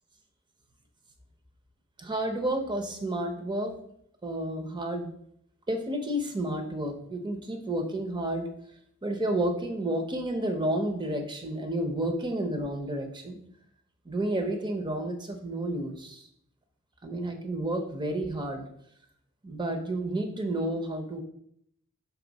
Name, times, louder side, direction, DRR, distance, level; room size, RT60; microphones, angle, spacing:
voice 1, 2.0-3.8 4.2-5.1 5.7-8.5 9.0-13.4 14.1-16.3 17.0-18.6 19.4-21.2, right 1 dB, 20° right, 5 dB, 0.8 m, -31 dB
6.0 x 4.1 x 4.1 m, 0.70 s
head